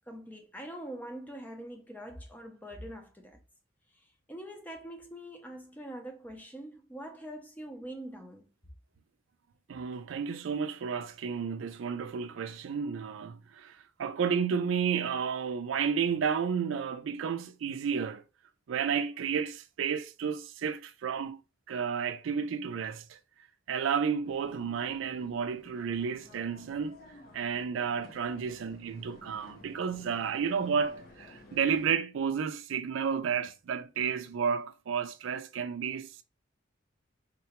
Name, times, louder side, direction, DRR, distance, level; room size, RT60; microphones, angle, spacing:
voice 1, 0.1-3.4 3.9-8.5, right 1 dB, 10° left, 0.5 m, -44 dB
voice 2, 9.7-18.2 18.7-21.4 21.7-23.2 23.7-27.0 27.3-36.2, right 6 dB, 80° right, 0.4 m, -32 dB
sound 1, 24.2-31.9, left 2 dB, 45° left, 0.7 m, -54 dB
3.7 x 2.2 x 2.8 m
head